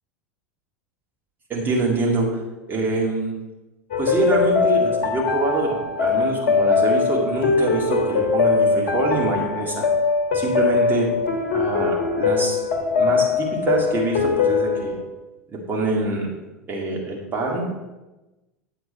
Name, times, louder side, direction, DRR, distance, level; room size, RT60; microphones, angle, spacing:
voice 1, 1.5-2.4 2.7-3.3 4.0-9.8 10.3-11.1 11.5-12.6 13.0-15.0 15.5-16.3 16.7-17.6, right 2 dB, 25° right, -2 dB, 2.2 m, -24 dB
sound 1, 3.9-15.0, left 4 dB, 55° left, 1.3 m, -21 dB
8.7 x 7.6 x 4.2 m, 1.0 s
figure-of-eight pair, 80°, 8 cm